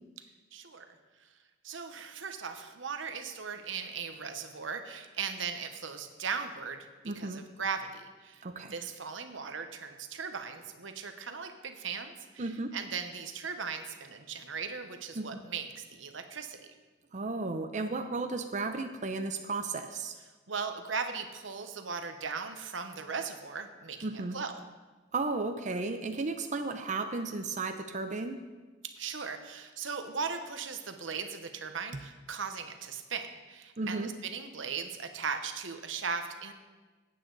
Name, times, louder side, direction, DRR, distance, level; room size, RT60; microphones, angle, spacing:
voice 1, 0.5-1.3 1.6-6.9 7.1-8.4 8.7-16.6 20.5-24.5 28.8-36.5, right 5 dB, 85° right, 7 dB, 1.1 m, -38 dB
voice 2, 7.0-7.4 8.4-8.7 12.4-12.7 15.2-15.3 17.1-20.1 24.0-24.4 25.1-28.4 31.9-32.0 33.8-34.1, right 3 dB, 40° right, 6 dB, 0.7 m, -34 dB
17.0 x 8.6 x 4.0 m, 1.3 s
head